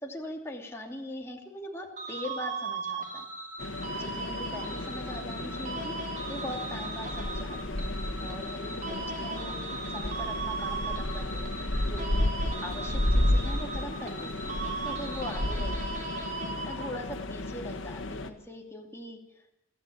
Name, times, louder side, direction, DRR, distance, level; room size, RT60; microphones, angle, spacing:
voice 1, 0.0-3.3 3.9-5.9 6.3-7.9 8.2-14.5 14.8-16.0 16.6-19.5, left 1 dB, 15° left, 1 dB, 2.7 m, -41 dB
sound 1, 2.0-17.2, right 4 dB, 40° right, 3.6 m, -38 dB
sound 2, 3.6-18.3, left 1 dB, 80° left, 1.7 m, -32 dB
24.0 x 13.5 x 8.7 m, 0.88 s
head